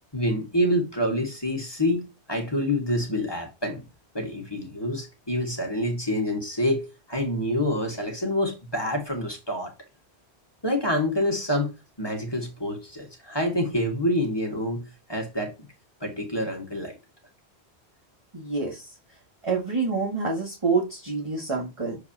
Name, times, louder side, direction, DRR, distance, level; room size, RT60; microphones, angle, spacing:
voice 1, 0.1-3.9 4.1-9.7 10.6-11.7 12.0-15.5 16.0-17.0, left 1 dB, 25° left, 1.8 m, -27 dB
voice 2, 18.3-18.9 19.4-22.0, right 4 dB, 30° right, 1.9 m, -27 dB
7.0 x 4.7 x 2.9 m
omnidirectional pair, 1.1 m